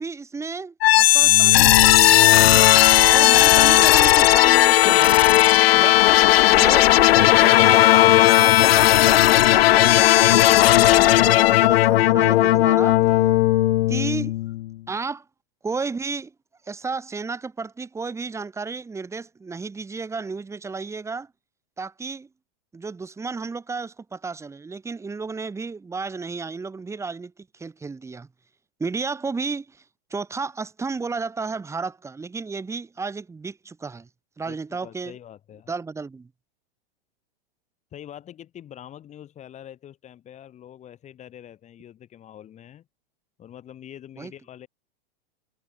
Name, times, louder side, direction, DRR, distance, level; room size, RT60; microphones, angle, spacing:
voice 1, 0.0-2.0 2.4-2.7 3.1-5.2 5.7-6.0 6.3-13.0 13.9-14.3 14.9-15.2 15.6-16.3 16.7-21.3 21.8-22.3 22.7-28.3 28.8-29.6 30.1-34.1 34.4-35.1 35.7-36.3 44.2-44.3, right 4 dB, 10° right, 3.6 m, -32 dB
sound 1, 0.8-14.7, left 15 dB, 70° left, 0.7 m, -15 dB
Bowed string instrument, 6.3-11.0, right 17 dB, 55° right, 3.5 m, -46 dB
voice 2, 34.5-35.7 37.9-42.9 43.4-44.7, left 10 dB, 20° left, 3.8 m, -44 dB
hypercardioid pair, 145°, 31 cm